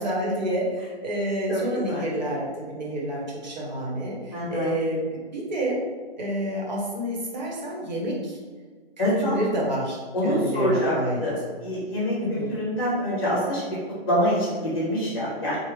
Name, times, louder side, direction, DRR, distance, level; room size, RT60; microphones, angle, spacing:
voice 1, 0.0-5.8 6.2-8.4 9.0-11.2 12.2-12.6, right 1 dB, 45° right, -3 dB, 0.9 m, -29 dB
voice 2, 4.3-4.7 9.0-9.4 10.1-10.9 11.2-13.8 14.1-15.6, equal, 20° left, -8 dB, 1.3 m, -25 dB
3.4 x 2.0 x 3.1 m, 1.5 s
hypercardioid pair, 175°, 31 cm